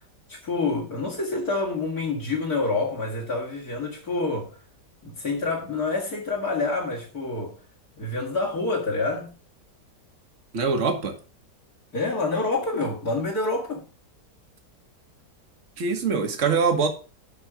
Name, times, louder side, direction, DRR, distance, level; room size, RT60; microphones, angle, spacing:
voice 1, 0.3-4.6 5.0-7.6 8.0-9.3 11.9-13.8, left 3 dB, 55° left, 2.4 m, -27 dB
voice 2, 10.5-11.2 15.8-16.9, right 5 dB, 45° right, 1.8 m, -23 dB
11.5 x 4.4 x 6.0 m
omnidirectional pair, 1.9 m